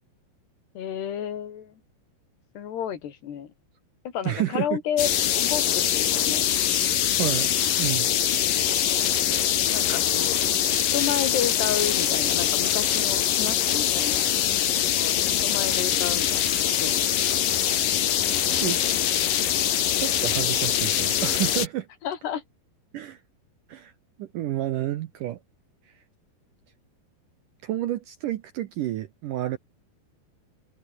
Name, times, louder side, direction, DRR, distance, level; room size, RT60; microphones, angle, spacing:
voice 1, 0.8-1.7 2.5-3.5 4.1-5.1 5.4-6.5 9.7-10.4 10.7-14.3 15.0-17.0 22.0-22.4, left 9 dB, 75° left, 4.8 m, -31 dB
voice 2, 4.2-4.8 7.1-7.5 7.8-8.1 18.6-18.8 19.3-19.6 20.0-21.9 22.9-23.2 23.7-23.9 24.2-25.4 25.8-26.0 27.6-29.6, right 13 dB, 75° right, 2.0 m, -30 dB
sound 1, 5.0-21.7, left 10 dB, 60° left, 3.3 m, -23 dB
omnidirectional pair, 4.9 m